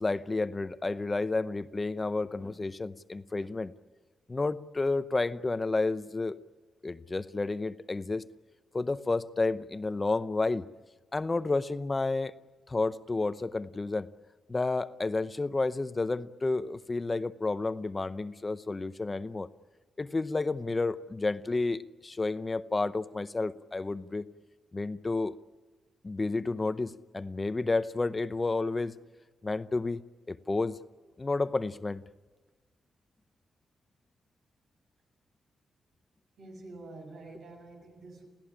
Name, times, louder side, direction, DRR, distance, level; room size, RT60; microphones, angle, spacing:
voice 1, 0.0-3.7 4.3-6.4 6.8-8.2 8.7-10.6 11.1-12.3 12.7-14.1 14.5-19.5 20.0-24.3 24.7-25.3 26.0-28.9 29.4-30.0 30.3-30.8 31.2-32.0, left 3 dB, 25° left, 13 dB, 0.7 m, -31 dB
voice 2, 36.4-38.3, right 2 dB, 75° right, 3 dB, 7.0 m, -47 dB
28.5 x 16.5 x 9.9 m, 1.3 s
cardioid pair, 115°, 0 cm